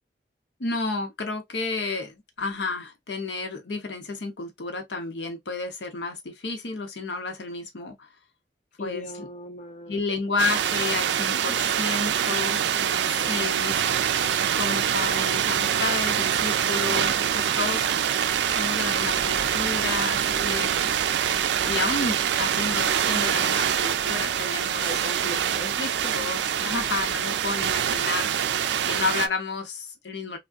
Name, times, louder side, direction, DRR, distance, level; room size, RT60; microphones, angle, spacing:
voice 1, 0.6-8.1 8.8-9.3 9.9-12.5 13.3-13.8 14.5-18.0 18.5-20.7 21.7-24.9 25.8-28.5 28.8-30.4, left 4 dB, 85° left, 0.9 m, -31 dB
voice 2, 8.8-10.0 11.3-11.4 12.4-13.5 20.4-20.9 24.8-26.1 26.6-26.7, left 1 dB, 45° left, 0.5 m, -39 dB
sound 1, 10.4-29.3, right 9 dB, 80° right, 0.3 m, -25 dB
sound 2, 18.3-27.8, right 1 dB, 10° right, 0.6 m, -48 dB
3.4 x 2.2 x 2.4 m
head